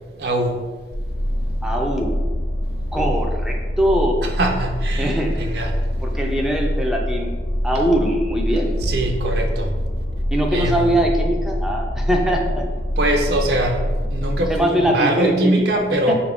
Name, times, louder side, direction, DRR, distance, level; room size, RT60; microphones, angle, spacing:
voice 1, 0.2-0.5 4.2-5.7 7.7-7.8 8.8-9.7 10.5-11.0 13.0-16.1, right 1 dB, 65° right, 3 dB, 0.5 m, -22 dB
sound 1, 0.9-14.6, equal, 75° left, 0.5 m, -24 dB
voice 2, 1.6-2.2 2.9-4.1 5.0-5.4 6.0-7.3 7.6-8.8 10.3-12.4 14.5-15.6 16.1-16.2, equal, 5° right, 0 dB, 0.3 m, -21 dB
5.0 x 2.5 x 3.4 m, 1.4 s
head